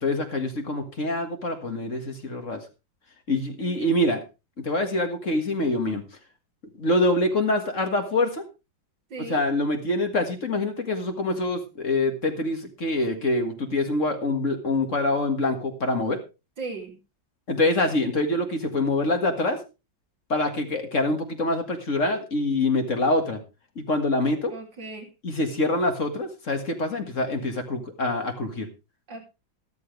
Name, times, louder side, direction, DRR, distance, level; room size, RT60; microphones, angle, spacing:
voice 1, 0.0-2.6 3.3-4.2 4.6-6.0 6.8-8.4 9.3-16.2 17.5-19.6 20.3-23.4 23.8-24.5 25.2-28.7, left 2 dB, 40° left, 5 dB, 2.1 m, -25 dB
voice 2, 3.6-3.9 9.1-9.4 16.6-17.0 24.5-25.1 29.1-29.2, right 3 dB, 70° right, 0 dB, 3.8 m, -37 dB
13.0 x 13.0 x 3.4 m, 0.28 s
omnidirectional pair, 2.1 m